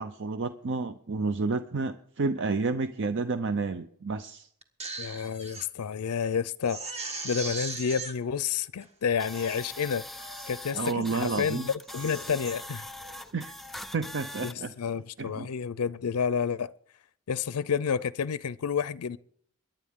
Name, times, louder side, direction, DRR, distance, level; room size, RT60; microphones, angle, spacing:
voice 1, 0.0-4.5 10.7-11.7 13.3-13.6 13.9-14.7 15.2-15.5, right 4 dB, 55° right, 0.7 m, -30 dB
Crying sobbing, 4.6-5.7 6.1-6.2 6.6-8.1 8.8-8.9 9.2-9.7 10.2-10.6 11.0-11.4 11.8-12.5 13.0-13.3, right 4 dB, 30° right, 1.5 m, -39 dB
voice 2, 5.0-6.8 7.2-10.0 10.5-12.9 14.4-16.7 17.3-19.2, left 6 dB, 85° left, 0.5 m, -30 dB
sound 1, 9.2-14.5, left 1 dB, ahead, 0.5 m, -42 dB
23.0 x 10.5 x 3.7 m
head